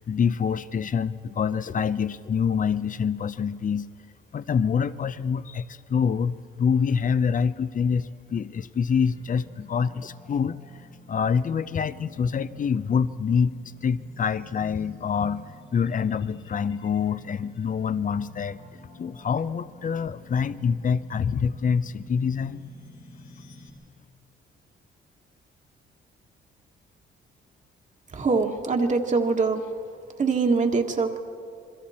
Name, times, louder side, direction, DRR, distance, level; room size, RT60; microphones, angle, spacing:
voice 1, 0.0-3.9 4.3-10.6 11.1-13.5 13.8-15.4 15.7-18.6 19.0-22.6, left 6 dB, 40° left, 15 dB, 0.7 m, -26 dB
sound 1, 8.9-23.7, left 1 dB, 90° left, 3.3 m, -49 dB
voice 2, 28.1-29.6 30.2-31.2, right 4 dB, 40° right, 3 dB, 1.6 m, -23 dB
28.0 x 22.0 x 4.3 m, 2.4 s
cardioid pair, 90°, 20 cm